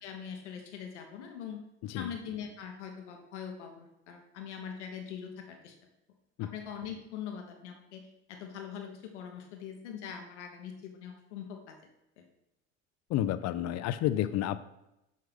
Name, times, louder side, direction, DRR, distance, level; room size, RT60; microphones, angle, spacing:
voice 1, 0.0-1.6 1.9-5.7 6.5-8.0 8.3-11.8 12.2-12.3, left 8 dB, 90° left, 4 dB, 1.1 m, -42 dB
voice 2, 13.1-14.6, left 12 dB, 50° left, 14 dB, 0.5 m, -30 dB
6.4 x 5.5 x 3.5 m, 0.89 s
hypercardioid pair, 75°, 34 cm